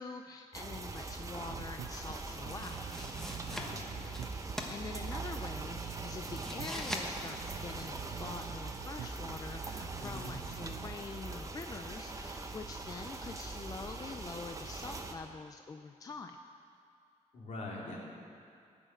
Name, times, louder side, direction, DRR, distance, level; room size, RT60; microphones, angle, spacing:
voice 1, 0.0-3.1 4.7-16.4, left 4 dB, 25° left, 6 dB, 0.4 m, -45 dB
sound 1, 0.5-15.1, right 3 dB, 25° right, 0.8 m, -42 dB
Bass guitar, 1.3-10.9, right 10 dB, 65° right, 0.5 m, -47 dB
sound 2, 2.2-10.6, left 1 dB, 5° left, 1.1 m, -45 dB
voice 2, 3.5-4.2 10.0-10.3 17.3-18.0, left 2 dB, 60° left, -4 dB, 3.3 m, -44 dB
17.5 x 6.4 x 9.0 m, 2.4 s
wide cardioid pair, 165°, 14 cm